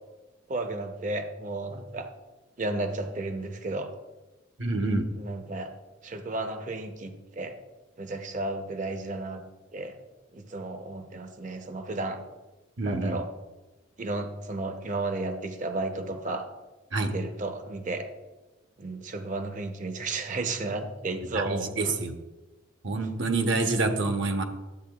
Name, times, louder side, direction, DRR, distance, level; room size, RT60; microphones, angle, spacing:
voice 1, 0.5-2.1 2.6-3.9 5.1-5.7 6.0-7.5 8.0-9.4 9.7-10.0 10.3-12.2 12.8-13.3 14.0-16.5 17.0-18.1 18.8-22.0, right 2 dB, 40° right, 7 dB, 0.7 m, -33 dB
voice 2, 4.6-5.1 12.8-13.2 16.9-17.1 21.3-22.2 22.8-24.4, right 3 dB, 65° right, 6 dB, 0.9 m, -27 dB
12.0 x 8.1 x 2.3 m, 1.2 s
head